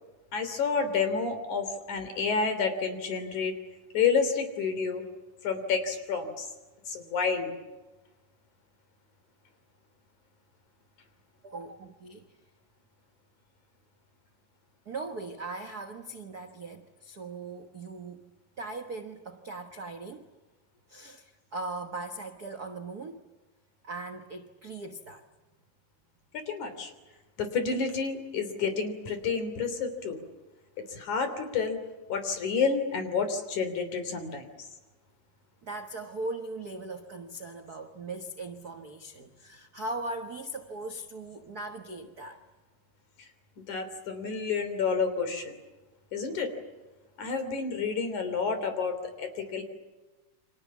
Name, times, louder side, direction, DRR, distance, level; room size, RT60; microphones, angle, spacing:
voice 1, 0.3-3.5 3.9-5.0 5.4-6.5 6.9-7.5 26.3-26.9 27.4-30.2 30.9-31.8 32.1-34.4 43.7-45.5 46.1-46.5 47.2-49.6, left 5 dB, 60° left, 8 dB, 4.6 m, -29 dB
voice 2, 11.4-12.3 14.8-18.2 18.6-20.3 20.9-23.3 23.8-25.2 35.6-42.4, right 2 dB, 60° right, 5 dB, 0.9 m, -39 dB
29.5 x 25.5 x 7.4 m, 1.2 s
omnidirectional pair, 3.9 m